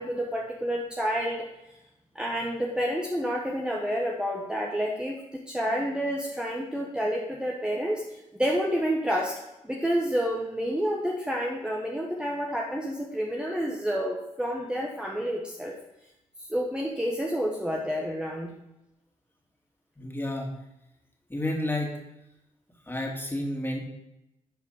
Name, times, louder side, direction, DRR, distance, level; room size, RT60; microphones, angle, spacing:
voice 1, 0.0-1.5 2.1-15.7 16.4-18.6, equal, 5° right, -1 dB, 1.4 m, -29 dB
voice 2, 20.0-20.5 21.3-22.0 22.9-23.8, left 1 dB, 15° left, -1 dB, 2.7 m, -30 dB
10.5 x 4.9 x 5.0 m, 0.91 s
supercardioid pair, 55°, 14 cm